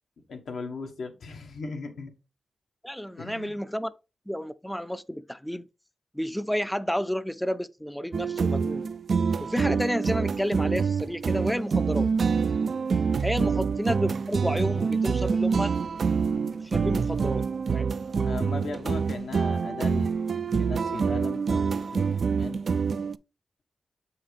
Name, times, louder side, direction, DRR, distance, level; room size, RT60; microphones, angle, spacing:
voice 1, 0.3-2.1 3.2-3.5 13.4-13.5 18.2-22.6, left 4 dB, 85° left, 1.2 m, -38 dB
voice 2, 2.8-3.9 4.3-5.7 6.1-8.8 9.4-12.1 13.2-15.8 16.6-17.9, equal, 5° left, 0.4 m, -31 dB
sound 1, 8.1-23.2, right 5 dB, 65° right, 0.3 m, -26 dB
7.0 x 5.7 x 3.2 m
cardioid pair, 60°, 0 cm